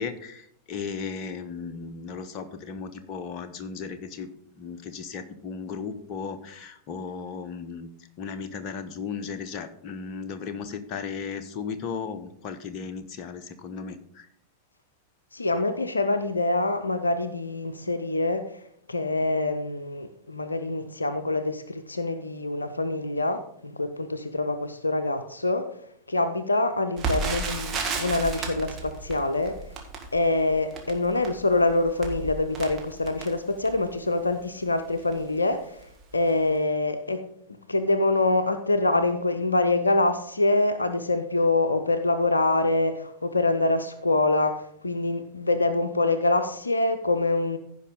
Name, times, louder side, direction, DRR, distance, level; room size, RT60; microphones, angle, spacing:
voice 1, 0.0-4.3 4.5-7.9 8.2-14.3, left 5 dB, 35° left, 1.0 m, -36 dB
voice 2, 15.3-18.6 18.9-25.7 26.1-29.6 30.1-37.2 37.7-47.6, left 2 dB, 80° left, 0.6 m, -25 dB
Crackle, 27.0-33.9 34.5-34.6 35.0-35.2 35.8-36.0 36.3-36.4, right 4 dB, 25° right, 2.0 m, -33 dB
15.5 x 5.3 x 3.9 m
figure-of-eight pair, 90°, 0 cm